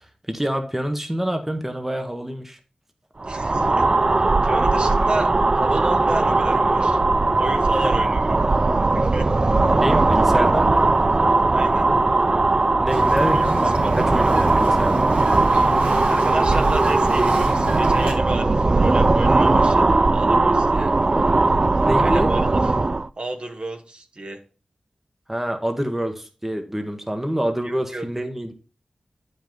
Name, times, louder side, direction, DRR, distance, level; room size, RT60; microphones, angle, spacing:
voice 1, 0.3-2.6 7.8-8.1 9.8-10.8 12.8-15.0 21.8-22.3 25.3-28.5, equal, 10° right, 5 dB, 1.0 m, -26 dB
sound 1, 3.2-23.1, right 3 dB, 35° right, 0.3 m, -19 dB
voice 2, 3.3-3.8 4.4-7.0 7.3-8.4 8.9-9.3 10.1-10.5 11.5-11.9 13.1-14.2 16.1-20.9 22.0-22.7 23.2-24.4 27.6-28.1, right 2 dB, 50° right, 5 dB, 1.3 m, -32 dB
Bird vocalization bird call bird song, 12.9-18.1, right 2 dB, 85° right, 2.0 m, -27 dB
8.8 x 5.4 x 3.8 m, 0.36 s
wide cardioid pair, 60°, 2 cm